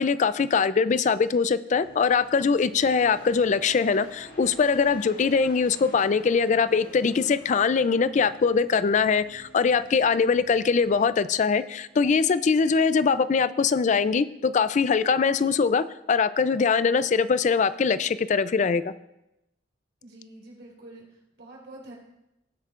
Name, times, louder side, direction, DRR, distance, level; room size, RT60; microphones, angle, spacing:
voice 1, 0.0-18.9, left 5 dB, 45° left, 14 dB, 0.4 m, -22 dB
sound 1, 1.7-12.0, left 1 dB, 65° left, 3.6 m, -50 dB
voice 2, 20.0-21.9, right 1 dB, 80° right, -3 dB, 4.2 m, -46 dB
18.5 x 8.1 x 2.5 m, 0.89 s
head